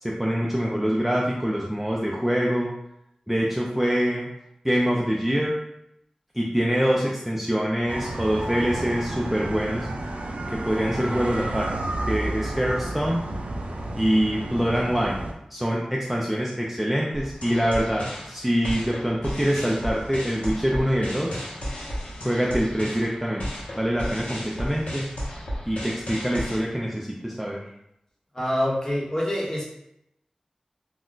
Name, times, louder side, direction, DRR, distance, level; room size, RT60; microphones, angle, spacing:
voice 1, 0.0-2.7 3.3-4.3 4.6-5.5 6.4-9.9 10.5-11.7 12.1-13.2 13.9-15.2 15.5-21.4 22.2-23.4 23.8-25.1 25.7-27.6, equal, 5° right, -3 dB, 0.4 m, -25 dB
sound 1, 7.9-15.3, right 1 dB, 85° right, 0.3 m, -31 dB
sound 2, 17.1-26.6, equal, 85° left, 0.7 m, -34 dB
voice 2, 28.3-29.6, equal, 25° left, -4 dB, 0.9 m, -25 dB
2.3 x 2.1 x 3.8 m, 0.79 s
wide cardioid pair, 65°, 2 cm